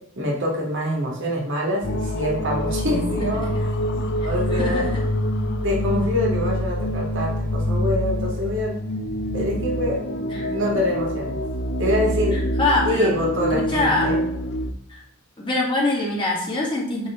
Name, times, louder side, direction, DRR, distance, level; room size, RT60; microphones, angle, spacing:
voice 1, 0.2-3.5 4.2-4.9 5.6-8.7 9.3-10.0 10.5-11.3 11.8-12.4 12.8-14.2, left 1 dB, 60° right, -2 dB, 2.1 m, -25 dB
sound 1, 1.8-14.7, equal, 55° left, 0.6 m, -26 dB
voice 2, 2.9-3.6 4.5-5.0 10.3-10.5 10.7-10.8 12.3-13.1 13.5-14.2 14.9-15.0 15.4-17.1, left 2 dB, 25° left, -4 dB, 2.1 m, -24 dB
9.7 x 3.6 x 3.7 m, 0.74 s
head